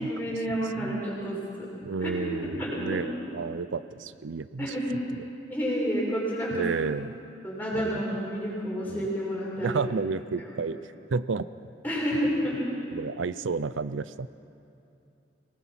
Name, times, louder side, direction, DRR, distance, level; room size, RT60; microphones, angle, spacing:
voice 1, 0.0-1.7 2.0-2.1 2.4-3.0 4.6-4.9 5.5-6.7 7.4-9.8 10.4-10.5 11.8-12.6, equal, 10° left, -5 dB, 5.9 m, -30 dB
voice 2, 1.8-4.7 6.5-7.1 7.7-8.0 8.9-9.1 9.6-10.8 11.1-11.5 12.9-14.3, right 4 dB, 90° right, 15 dB, 0.5 m, -31 dB
25.5 x 19.0 x 5.9 m, 2.6 s
head